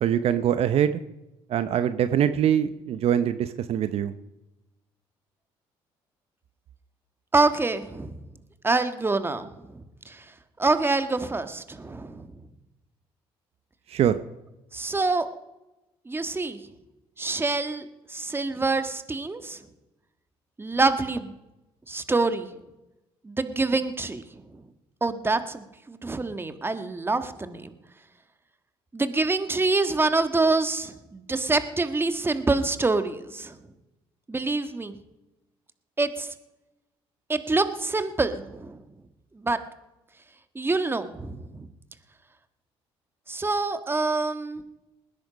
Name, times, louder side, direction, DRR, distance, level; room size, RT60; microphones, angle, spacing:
voice 1, 0.0-1.0 1.5-4.1 13.9-14.2, right 9 dB, 65° right, 12 dB, 0.7 m, -23 dB
voice 2, 7.3-8.1 8.6-10.2 10.6-12.3 14.7-15.3 16.1-16.6 17.2-19.6 20.6-21.3 21.9-22.5 23.2-24.2 25.0-27.7 28.9-33.6 34.3-35.0 36.0-36.3 37.3-38.8 39.4-39.6 40.5-41.7 43.3-44.6, right 3 dB, 20° right, 10 dB, 1.5 m, -26 dB
19.5 x 10.5 x 5.2 m, 0.98 s
supercardioid pair, 75°, 11 cm